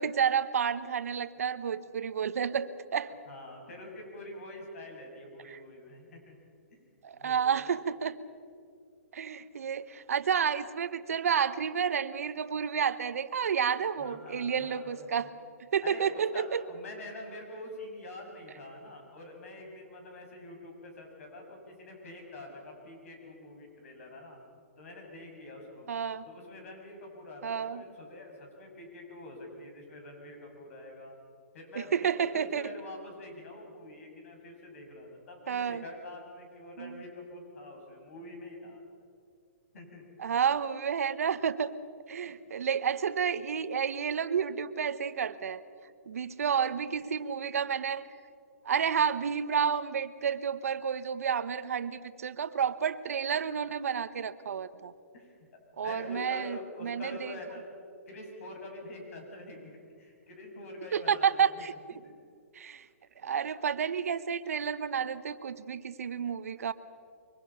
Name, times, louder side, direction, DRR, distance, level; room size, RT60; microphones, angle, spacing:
voice 1, 0.0-3.1 7.0-8.2 9.1-15.3 15.7-16.6 25.9-26.2 27.4-27.8 31.7-32.7 35.5-35.8 36.8-37.0 40.2-41.7 42.1-45.6 46.1-48.0 48.6-54.9 55.8-57.3 60.9-61.7 62.5-62.9 63.2-66.7, right 7 dB, 80° right, 12 dB, 1.1 m, -30 dB
voice 2, 3.3-6.3 7.1-7.7 14.0-15.3 15.8-24.4 24.8-25.9 26.3-31.2 31.5-38.8 39.7-40.0 55.1-55.3 55.8-57.6 58.1-61.6 62.0-62.1, left 2 dB, 70° left, 2 dB, 7.1 m, -46 dB
24.0 x 24.0 x 5.8 m, 2.3 s
hypercardioid pair, 145°, 8 cm